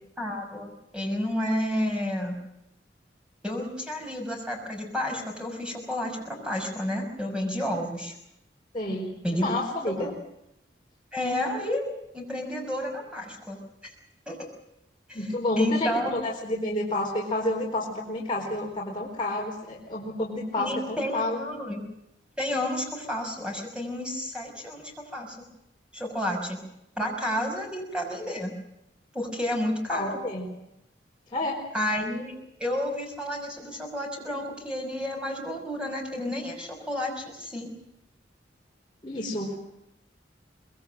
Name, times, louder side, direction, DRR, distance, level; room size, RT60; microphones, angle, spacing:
voice 1, 0.2-2.4 3.4-8.1 9.2-9.5 10.0-10.1 11.1-11.9 12.1-13.9 14.3-14.4 15.1-15.3 15.6-16.1 20.5-21.8 22.4-25.4 25.9-26.6 27.0-28.5 29.1-30.2 31.7-32.3 32.6-37.7, left 1 dB, 5° right, 1 dB, 6.1 m, -31 dB
voice 2, 8.7-10.1 15.1-21.4 29.9-30.5 31.3-31.6 39.0-39.5, left 1 dB, 25° left, -4 dB, 4.2 m, -29 dB
24.5 x 21.5 x 7.8 m, 0.83 s
head